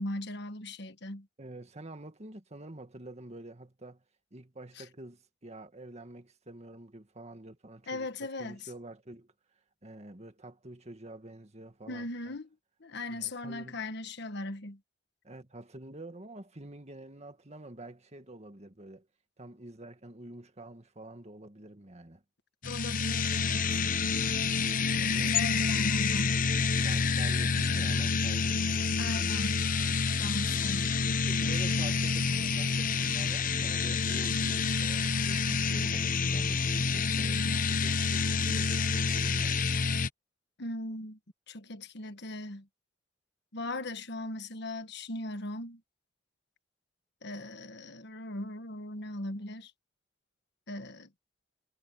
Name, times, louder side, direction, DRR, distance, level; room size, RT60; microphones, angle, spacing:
voice 1, 0.0-1.3 4.8-4.9 7.9-8.6 11.9-12.5 12.8-14.8 22.6-23.6 24.9-26.4 29.0-29.6 30.2-31.0 40.6-41.2 41.5-42.7 43.5-45.8 47.2-49.7 50.7-51.1, left 2 dB, 60° left, 1.5 m, -38 dB
voice 2, 1.4-4.0 4.3-8.1 8.4-9.3 9.8-12.3 13.1-13.8 15.2-19.1 19.4-22.2 25.1-25.3 26.8-29.3 31.3-39.6, right 1 dB, 35° right, 2.0 m, -47 dB
sound 1, 22.6-40.1, left 5 dB, 45° left, 1.0 m, -28 dB
head